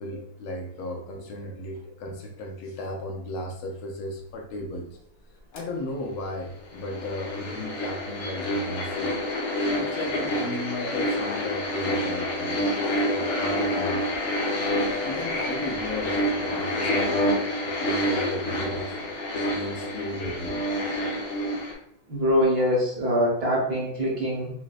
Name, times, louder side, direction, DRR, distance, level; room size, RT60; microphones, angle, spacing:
voice 1, 0.0-5.0 5.5-9.2 9.8-12.6 13.1-14.1 15.0-17.4 17.6-18.9 19.5-20.7, left 1 dB, 75° left, 2 dB, 1.4 m, -35 dB
sound 1, 5.6-5.7 6.7-21.7, left 1 dB, 60° left, 1.0 m, -28 dB
voice 2, 22.1-24.5, equal, 50° right, -5 dB, 1.6 m, -23 dB
6.1 x 2.1 x 2.4 m, 0.69 s
omnidirectional pair, 2.3 m